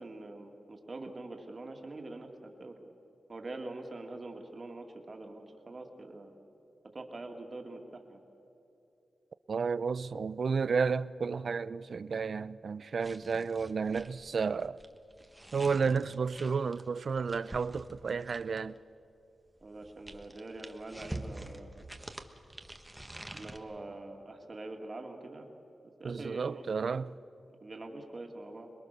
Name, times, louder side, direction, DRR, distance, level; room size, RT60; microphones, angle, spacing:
voice 1, 0.0-2.8 3.3-6.3 6.9-8.2 19.6-21.7 23.3-25.5 26.0-27.0 27.6-28.7, right 2 dB, 35° right, 2.3 m, -44 dB
voice 2, 9.5-14.8 15.5-18.8 26.0-27.1, right 5 dB, 55° right, 0.5 m, -32 dB
sound 1, 13.0-18.8 19.6-23.6, right 1 dB, 10° right, 1.2 m, -47 dB
26.5 x 21.5 x 6.7 m
wide cardioid pair, 120°, 0 cm